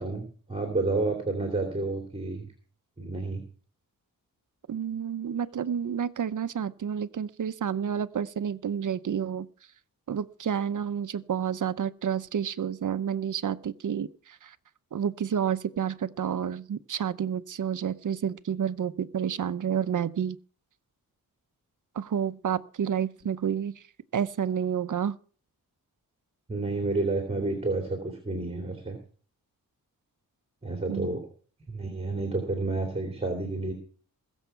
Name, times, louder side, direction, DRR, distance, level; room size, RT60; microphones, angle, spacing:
voice 1, 0.0-2.5 3.0-3.4 26.5-29.0 30.6-31.3 31.7-33.7, right 2 dB, 15° right, 3.0 m, -30 dB
voice 2, 4.7-9.5 10.1-14.6 14.9-20.4 21.9-23.8 24.1-25.2 30.9-31.1, right 8 dB, 60° right, 0.8 m, -30 dB
21.5 x 7.2 x 5.7 m
wide cardioid pair, 115°, 35 cm